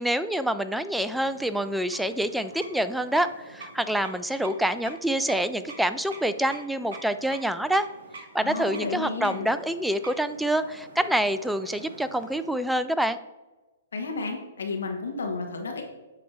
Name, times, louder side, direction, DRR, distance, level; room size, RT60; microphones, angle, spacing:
voice 1, 0.0-7.9 8.3-13.2, right 1 dB, ahead, 11 dB, 0.3 m, -26 dB
sound 1, 0.9-12.7, right 2 dB, 60° right, 1.4 m, -46 dB
voice 2, 8.4-9.5 13.9-15.8, left 4 dB, 75° left, 2 dB, 1.1 m, -32 dB
7.8 x 3.2 x 4.6 m, 1.1 s
hypercardioid pair, 120°, 0 cm